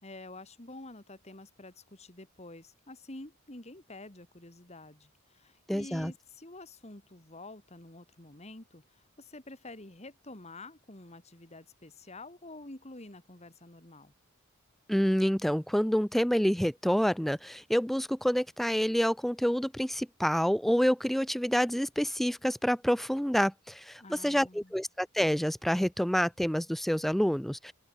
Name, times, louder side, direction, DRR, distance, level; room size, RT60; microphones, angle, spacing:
voice 1, 0.0-14.1 24.0-24.7, left 2 dB, 30° left, 2.6 m, -48 dB
voice 2, 5.7-6.1 14.9-27.7, equal, ahead, 0.3 m, -28 dB
open air
head